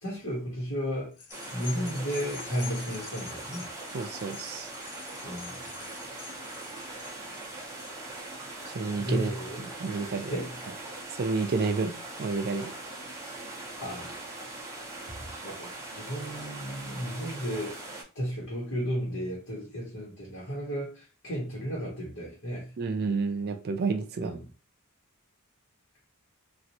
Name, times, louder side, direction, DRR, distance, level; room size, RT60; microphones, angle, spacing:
voice 1, 0.0-1.1 1.5-3.7 5.2-5.7 9.0-9.7 10.3-10.5 13.8-14.3 14.7-14.8 15.2-17.7 18.1-22.7 24.2-24.5, equal, 60° left, 1.3 m, -34 dB
sound 1, 1.1-9.8 10.3-10.4, left 7 dB, 85° left, 0.7 m, -47 dB
sound 2, 1.3-18.0, right 2 dB, 15° right, 0.7 m, -41 dB
voice 2, 3.9-4.7 8.7-9.3 9.6-10.3 11.2-11.9 12.2-12.7 22.8-24.4, right 4 dB, 45° right, 0.4 m, -30 dB
3.0 x 2.5 x 2.7 m
head